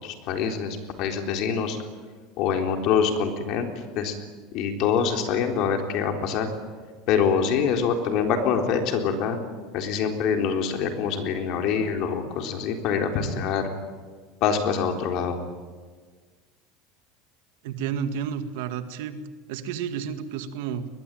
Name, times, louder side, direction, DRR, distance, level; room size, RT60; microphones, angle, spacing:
voice 1, 0.0-1.8 2.4-3.7 4.0-4.1 4.5-6.5 7.1-9.4 9.7-13.7 14.4-15.4, left 6 dB, 55° left, 4 dB, 3.9 m, -25 dB
voice 2, 17.6-19.2 19.5-20.9, right 8 dB, 75° right, 9 dB, 2.0 m, -31 dB
22.5 x 21.5 x 9.2 m, 1.5 s
supercardioid pair, 145°, 0 cm